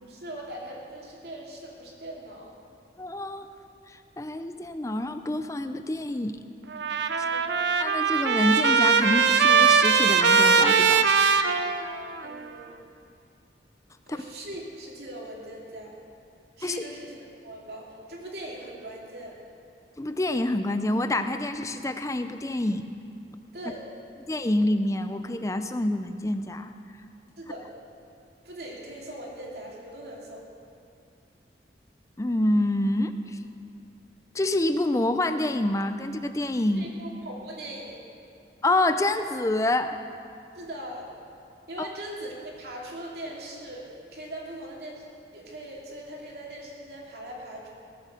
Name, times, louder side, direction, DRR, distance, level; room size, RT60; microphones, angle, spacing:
voice 1, 0.0-2.5 7.2-7.6 12.2-12.8 14.1-15.9 16.6-19.4 23.5-23.9 27.4-27.7 28.4-30.4 36.8-38.0 40.5-41.1 41.7-45.0 45.3-47.7, right 1 dB, 65° right, -2 dB, 2.6 m, -40 dB
voice 2, 3.0-3.5 3.9-6.4 7.8-11.1 14.1-14.2 16.6-16.8 20.0-22.9 24.3-26.7 32.2-33.4 34.3-36.9 38.6-40.0 41.8-41.9, left 1 dB, 20° left, 9 dB, 0.5 m, -27 dB
Trumpet, 6.7-12.3, right 5 dB, 85° right, 0.7 m, -21 dB
18.5 x 7.5 x 6.6 m, 2.5 s
head